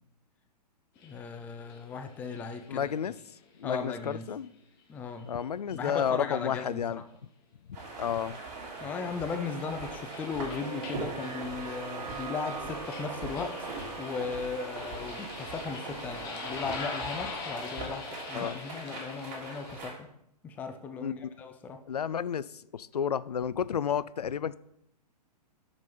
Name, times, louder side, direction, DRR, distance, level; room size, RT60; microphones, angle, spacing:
sound 1, 1.0-3.6 4.0-4.2 5.2-5.4 5.7-5.9 8.3-19.8, left 4 dB, 35° left, 1.7 m, -44 dB
voice 1, 1.0-2.9 3.6-4.3 4.9-5.3 5.7-7.0 8.8-20.1 20.4-21.8, left 5 dB, 5° left, 0.4 m, -37 dB
voice 2, 2.7-3.2 3.6-4.5 5.2-7.0 8.0-8.4 18.3-18.6 21.0-21.2 21.9-24.6, left 8 dB, 70° left, 0.4 m, -31 dB
sound 2, 7.7-20.0, right 3 dB, 30° right, 2.9 m, -41 dB
sound 3, 10.6-16.9, right 5 dB, 55° right, 1.4 m, -45 dB
7.4 x 6.1 x 5.2 m
figure-of-eight pair, 115°, 21 cm